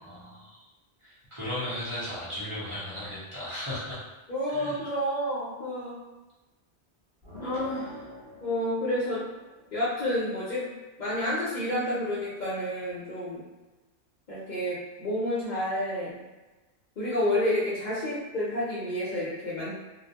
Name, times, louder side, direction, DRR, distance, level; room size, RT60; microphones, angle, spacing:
voice 1, 0.0-0.6 1.0-4.0 4.5-4.9, left 1 dB, 30° right, -11 dB, 0.9 m, -36 dB
voice 2, 4.3-6.0 7.4-8.0 8.4-9.2 9.7-10.7 11.0-13.4 14.3-16.2 17.0-19.7, left 1 dB, 55° left, -8 dB, 0.6 m, -29 dB
sound 1, 7.2-9.9, left 2 dB, 60° right, 1.4 m, -43 dB
2.2 x 2.1 x 2.7 m, 1.1 s
omnidirectional pair, 1.1 m